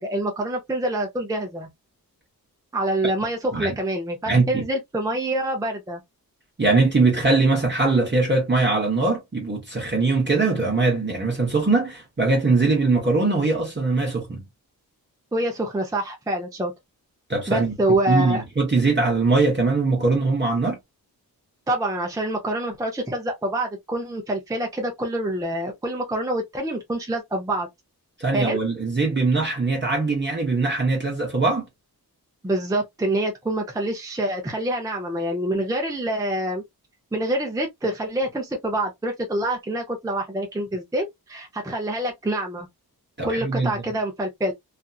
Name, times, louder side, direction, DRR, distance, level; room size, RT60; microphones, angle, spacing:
voice 1, 0.0-1.7 2.7-6.0 15.3-16.7 17.5-18.4 21.7-27.7 28.3-28.6 32.4-36.6 37.1-42.7 43.2-44.5, right 1 dB, 10° right, 0.5 m, -26 dB
voice 2, 4.3-4.6 6.6-14.4 17.3-17.7 18.1-20.8 28.2-31.6 43.2-43.7, right 3 dB, 30° right, 0.9 m, -21 dB
2.7 x 2.5 x 2.3 m
wide cardioid pair, 140°, 37 cm